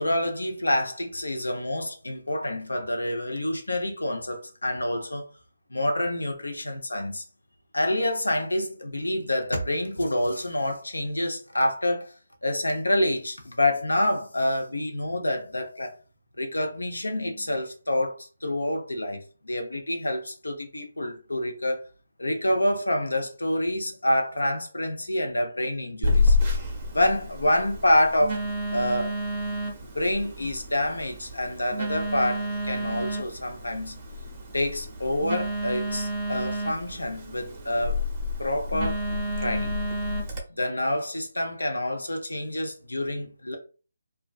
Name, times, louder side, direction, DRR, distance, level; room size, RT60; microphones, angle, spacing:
voice 1, 0.0-5.3 5.7-7.2 7.7-12.1 12.4-15.9 16.4-21.8 22.2-26.4 26.9-29.2 29.9-34.0 34.5-38.0 38.4-39.0 39.4-39.8 40.6-43.6, left 1 dB, 85° left, 0.7 m, -27 dB
Telephone, 26.0-40.4, left 1 dB, 25° right, 0.7 m, -29 dB
2.3 x 2.2 x 2.3 m
figure-of-eight pair, 150°, 0 cm